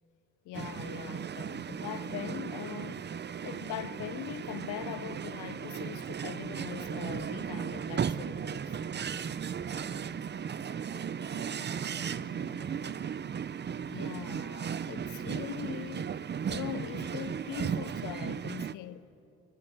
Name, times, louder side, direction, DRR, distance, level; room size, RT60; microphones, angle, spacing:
voice 1, 0.4-3.1 3.4-8.8 13.9-16.2 16.5-19.1, left 13 dB, 80° left, 0.7 m, -41 dB
sound 1, 0.5-18.7, right 7 dB, 35° right, 0.7 m, -36 dB
voice 2, 9.5-13.1, left 1 dB, 35° left, 4.7 m, -53 dB
24.0 x 22.0 x 9.1 m
cardioid pair, 90°, 30 cm